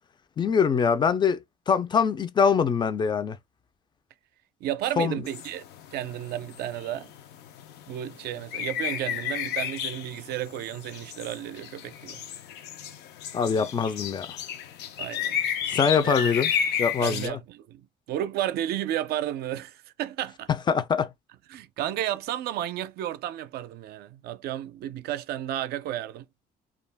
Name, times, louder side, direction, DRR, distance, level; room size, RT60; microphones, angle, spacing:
voice 1, 0.4-1.4 1.7-3.4 5.0-5.2 13.3-14.3 15.7-16.5 16.8-17.4 20.7-21.1, left 6 dB, 25° left, 0.4 m, -23 dB
voice 2, 4.6-5.6 5.9-7.1 7.9-12.2 15.0-15.4 15.8-16.2 17.0-20.5 21.5-26.3, right 12 dB, 70° right, 0.4 m, -32 dB
sound 1, 5.3-17.3, left 8 dB, 80° left, 0.5 m, -33 dB
2.3 x 2.1 x 3.3 m
cardioid pair, 110°, 17 cm